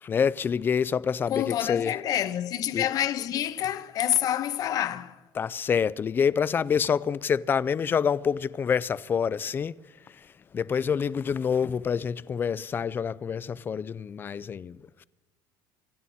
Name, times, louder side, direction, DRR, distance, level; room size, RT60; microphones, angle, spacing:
voice 1, 0.0-1.9 2.7-2.9 5.4-9.8 10.1-15.0, left 7 dB, 25° left, 0.4 m, -27 dB
voice 2, 1.3-5.2, left 11 dB, 45° left, 0.8 m, -27 dB
25.5 x 11.0 x 4.2 m
cardioid pair, 150°, 9 cm